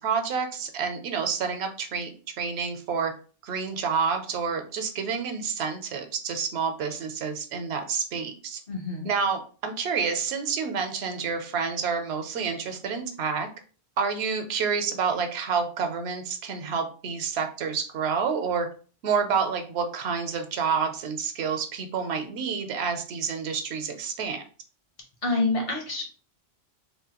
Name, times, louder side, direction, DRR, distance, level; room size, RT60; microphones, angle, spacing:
voice 1, 0.0-2.1 2.4-3.1 3.4-8.6 9.0-13.5 14.0-18.7 19.0-24.4, right 6 dB, 75° right, 6 dB, 0.8 m, -28 dB
voice 2, 8.7-9.1 25.2-26.0, left 3 dB, 60° left, 1 dB, 1.1 m, -27 dB
3.0 x 2.2 x 2.8 m, 0.39 s
omnidirectional pair, 1.1 m